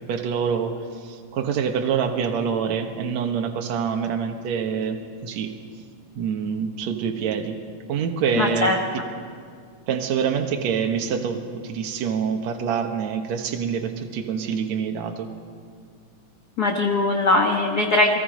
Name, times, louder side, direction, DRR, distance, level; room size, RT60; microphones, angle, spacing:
voice 1, 0.1-5.5 6.2-7.6 7.9-9.0 9.9-15.3, right 7 dB, 60° right, 4 dB, 2.4 m, -26 dB
voice 2, 8.4-8.8 16.6-18.2, left 2 dB, 80° left, 2 dB, 0.8 m, -20 dB
30.0 x 21.5 x 5.2 m, 2.1 s
omnidirectional pair, 3.8 m